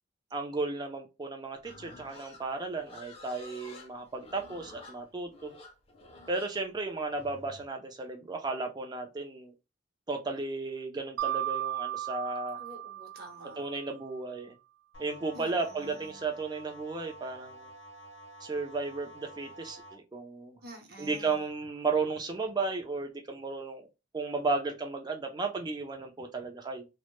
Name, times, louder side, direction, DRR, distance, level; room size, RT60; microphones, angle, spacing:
voice 1, 0.3-5.5 6.3-9.5 10.1-12.6 13.6-14.5 15.0-17.7 18.4-20.6 21.0-23.9 24.1-26.9, right 3 dB, 20° right, 0.4 m, -34 dB
Livestock farm animals working animals, 1.6-7.7, left 2 dB, 30° left, 0.5 m, -50 dB
Mallet percussion, 11.2-13.9, right 13 dB, 85° right, 0.4 m, -35 dB
voice 2, 12.6-13.7 15.3-16.2 20.6-21.4, right 2 dB, 55° right, 0.8 m, -49 dB
sound 1, 14.9-19.9, right 1 dB, 70° left, 0.6 m, -50 dB
2.1 x 2.0 x 3.0 m
head